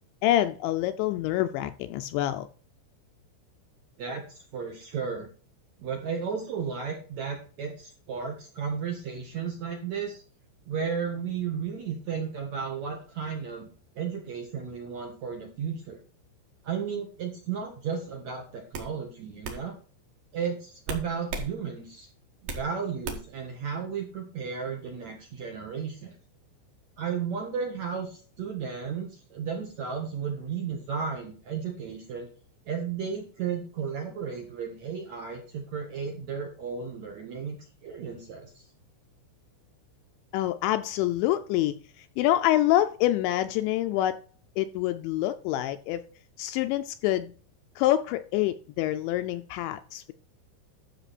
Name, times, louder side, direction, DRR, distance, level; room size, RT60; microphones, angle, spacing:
voice 1, 0.2-2.5 40.3-44.2 44.6-46.0 46.4-47.3 47.8-50.1, left 14 dB, 85° left, 10 dB, 2.6 m, -26 dB
voice 2, 4.5-5.3 5.8-10.2 10.7-13.7 13.9-16.0 16.6-19.7 20.3-22.1 22.4-26.1 27.0-32.3 32.6-37.6 37.8-38.7, right 6 dB, 80° right, 3 dB, 1.6 m, -34 dB
sound 1, 17.9-18.2 18.7-18.9 19.4-19.6 20.9-21.5 21.9-22.7 23.0-23.4, right 3 dB, 55° right, 2.8 m, -35 dB
12.5 x 6.4 x 4.1 m, 0.40 s
omnidirectional pair, 5.7 m